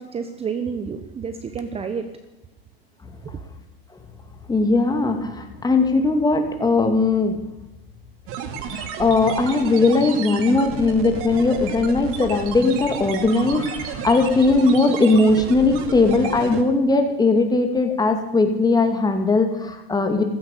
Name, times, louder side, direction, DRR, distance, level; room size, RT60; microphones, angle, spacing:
voice 1, 0.0-2.1 3.2-3.3, right 6 dB, 20° right, 9 dB, 1.1 m, -29 dB
voice 2, 4.5-7.4 8.6-20.2, left 3 dB, 15° left, 5 dB, 2.4 m, -19 dB
sound 1, 8.3-16.6, right 6 dB, 45° right, 2.5 m, -32 dB
15.0 x 14.0 x 6.7 m, 0.96 s
hypercardioid pair, 110°, 30 cm